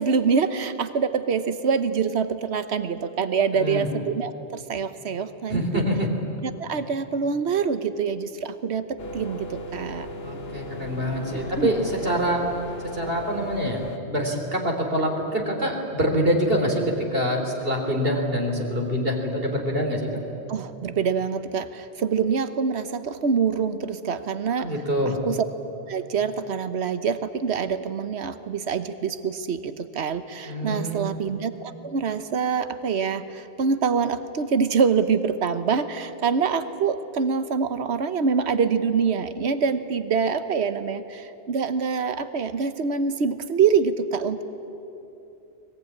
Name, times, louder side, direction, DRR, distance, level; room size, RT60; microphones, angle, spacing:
voice 1, 0.0-5.8 6.4-10.1 11.3-11.7 20.5-24.7 25.0-25.4 25.9-44.4, right 6 dB, 80° right, 11 dB, 1.3 m, -25 dB
voice 2, 3.5-3.9 5.5-6.1 10.2-12.4 12.9-20.1 24.6-25.2 30.5-31.1, equal, 60° right, 2 dB, 3.7 m, -25 dB
sound 1, 9.0-14.0, equal, 70° left, 1.5 m, -36 dB
23.0 x 21.0 x 9.7 m, 2.8 s
omnidirectional pair, 1.1 m